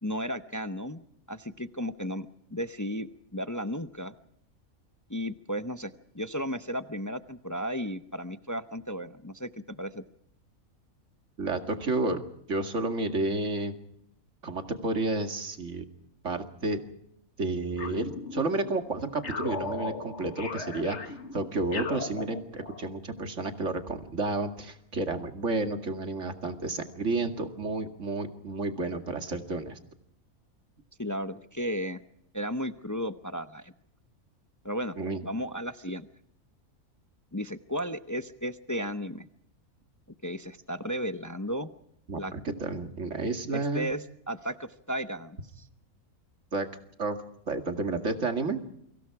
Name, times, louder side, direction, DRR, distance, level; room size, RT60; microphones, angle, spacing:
voice 1, 0.0-1.0 1.3-2.3 2.5-4.1 5.1-10.0 31.0-32.0 32.3-33.7 34.6-35.0 35.2-36.1 37.3-39.3 40.2-41.7 42.1-42.3 43.5-45.7, equal, 20° left, 10 dB, 0.6 m, -34 dB
voice 2, 11.4-12.2 12.5-13.7 14.4-15.8 16.2-16.8 17.4-29.8 35.0-35.2 42.1-43.9 46.5-46.7 47.0-47.2 47.5-48.6, right 2 dB, 55° right, 6 dB, 2.5 m, -31 dB
sound 1, 17.8-18.7 19.2-22.9, left 3 dB, 55° left, 1.9 m, -37 dB
28.5 x 25.0 x 4.8 m, 0.76 s
omnidirectional pair, 1.5 m